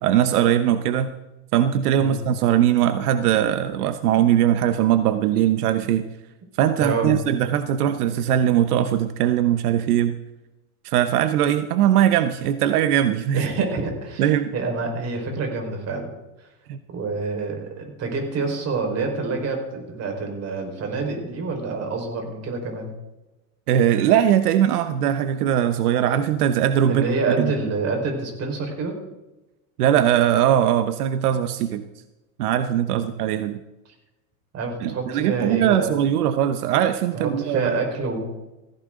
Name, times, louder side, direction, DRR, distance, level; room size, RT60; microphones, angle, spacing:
voice 1, 0.0-1.1 1.5-6.0 6.6-10.1 10.8-13.5 14.2-14.5 16.7-16.8 23.7-27.1 27.4-27.5 29.8-31.8 32.4-33.6 34.8-37.7, right 10 dB, 80° right, 10 dB, 1.1 m, -20 dB
voice 2, 13.3-16.1 16.4-16.5 16.9-22.9 26.9-28.9 32.9-33.3 34.5-36.0 36.3-36.4 37.1-38.2, right 3 dB, 35° right, 3 dB, 4.8 m, -27 dB
17.0 x 15.5 x 3.8 m, 1.0 s
supercardioid pair, 130°, 44 cm